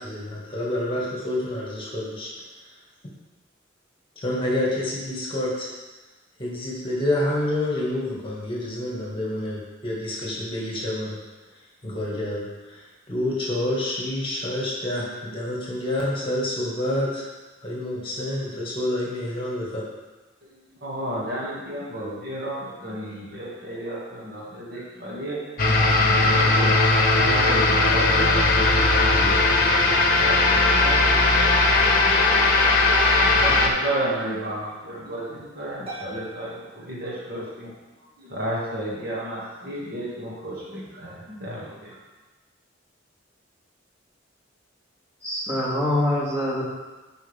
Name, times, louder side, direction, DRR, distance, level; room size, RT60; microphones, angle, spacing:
voice 1, 0.0-2.3 4.2-5.7 6.4-11.2 11.8-17.3 17.6-19.8, left 1 dB, 25° left, -4 dB, 1.9 m, -28 dB
voice 2, 20.8-31.1 31.7-32.8 33.1-37.7 38.2-42.0, right 1 dB, 55° right, -6 dB, 2.1 m, -33 dB
sound 1, 25.6-33.7, left 2 dB, 50° left, 1.0 m, -18 dB
Harp, 35.9-37.7, right 2 dB, 30° right, 2.6 m, -42 dB
voice 3, 45.2-46.6, left 1 dB, 15° right, -7 dB, 2.4 m, -24 dB
11.0 x 5.5 x 3.5 m, 1.2 s
head